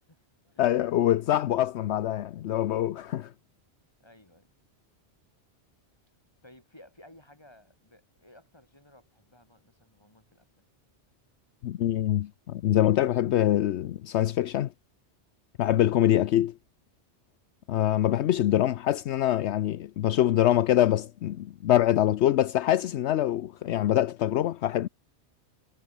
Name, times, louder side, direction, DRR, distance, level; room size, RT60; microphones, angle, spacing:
voice 1, 0.1-0.9 4.0-4.5 6.4-10.6 15.7-15.9, left 1 dB, 20° left, 4.3 m, -56 dB
voice 2, 0.6-3.3 11.6-14.7 15.6-16.5 17.7-24.9, left 12 dB, 75° left, 0.9 m, -24 dB
omnidirectional pair, 1.2 m